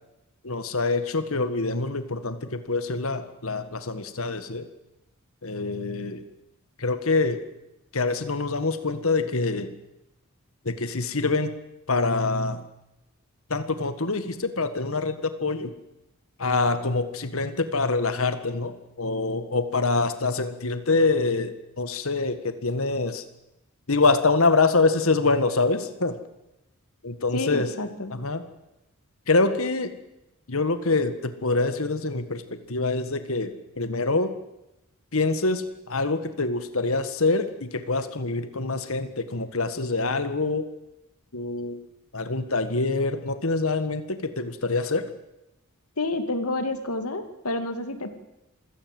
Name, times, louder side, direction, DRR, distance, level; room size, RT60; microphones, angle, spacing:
voice 1, 0.5-4.6 5.4-6.2 6.8-7.4 7.9-9.7 10.7-11.5 11.9-12.6 13.5-15.1 15.4-15.7 16.4-23.2 23.9-26.2 27.0-27.7 28.2-28.4 29.3-29.9 30.5-32.4 32.7-33.5 33.8-34.3 35.1-35.6 35.9-40.6 41.3-41.8 42.1-45.1, left 3 dB, 70° left, 10 dB, 1.7 m, -25 dB
voice 2, 27.3-28.1 46.0-48.1, left 2 dB, 90° left, 9 dB, 2.5 m, -29 dB
26.5 x 17.0 x 7.8 m, 0.94 s
head